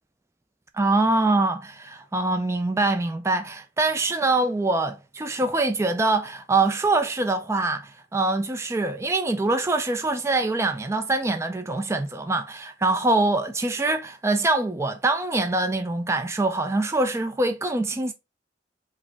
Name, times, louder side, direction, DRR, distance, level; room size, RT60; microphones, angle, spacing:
voice 1, 0.7-18.1, right 2 dB, 15° right, 0.3 m, -24 dB
5.0 x 2.1 x 3.4 m
head